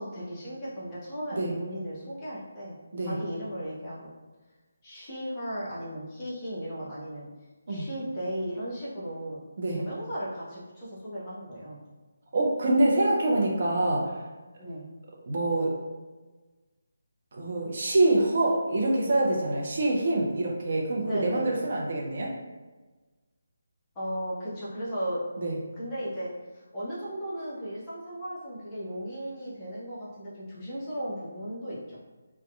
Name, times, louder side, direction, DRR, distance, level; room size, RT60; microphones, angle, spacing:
voice 1, 0.0-2.7 3.0-4.1 4.8-7.3 7.7-9.4 9.7-11.8 14.6-14.9 21.0-21.6 23.9-25.2 25.8-32.0, equal, 15° left, -10 dB, 0.7 m, -36 dB
voice 2, 12.3-14.1 15.3-15.7 17.3-22.3 25.4-25.6, right 2 dB, 40° right, -2 dB, 0.5 m, -25 dB
2.6 x 2.2 x 2.2 m, 1.3 s
figure-of-eight pair, 150°, 0 cm